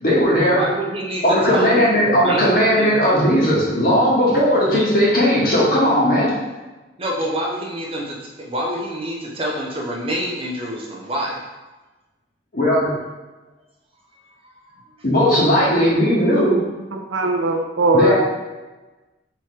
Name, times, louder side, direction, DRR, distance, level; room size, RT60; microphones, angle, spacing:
voice 1, 0.0-0.6 1.2-6.3 12.5-12.9 15.0-16.6 17.9-18.2, equal, 50° left, -6 dB, 1.3 m, -17 dB
voice 2, 0.5-3.3 7.0-11.4, equal, 30° right, -1 dB, 0.7 m, -27 dB
voice 3, 16.9-18.2, right 1 dB, 90° right, 4 dB, 0.5 m, -19 dB
3.5 x 3.1 x 4.4 m, 1.2 s
head